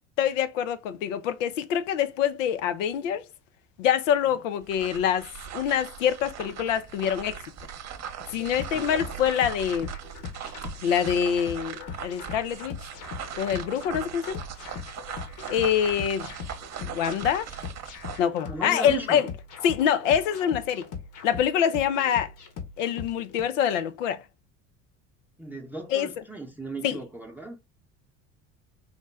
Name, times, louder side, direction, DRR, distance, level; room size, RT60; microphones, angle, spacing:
voice 1, 0.2-3.2 3.8-7.4 8.3-9.9 10.8-12.8 13.4-14.4 15.5-16.3 16.8-17.5 18.2-19.3 19.6-20.9 21.2-22.3 22.8-24.2 25.9-26.1 26.8-27.0, left 9 dB, 80° left, 0.6 m, -25 dB
sound 1, 4.6-18.3, right 8 dB, 45° right, 0.8 m, -40 dB
sound 2, 8.2-23.4, left 6 dB, 60° left, 1.1 m, -40 dB
voice 2, 18.5-19.3 25.4-27.6, right 3 dB, 5° right, 0.8 m, -37 dB
4.0 x 2.1 x 3.3 m
hypercardioid pair, 70°, 37 cm